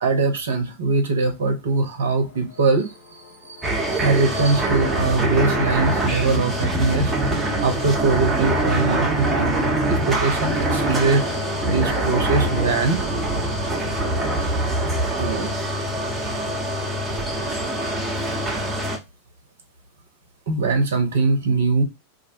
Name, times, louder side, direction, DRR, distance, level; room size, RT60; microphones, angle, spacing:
voice 1, 0.0-7.2 7.6-13.0 14.4-14.5 15.2-15.5 20.5-21.8, right 3 dB, 60° right, 0.6 m, -22 dB
sound 1, 2.1-14.7, left 4 dB, 35° left, 0.7 m, -40 dB
sound 2, 3.6-19.0, right 1 dB, 15° right, 0.7 m, -24 dB
2.4 x 2.0 x 2.6 m
figure-of-eight pair, 90°, 0 cm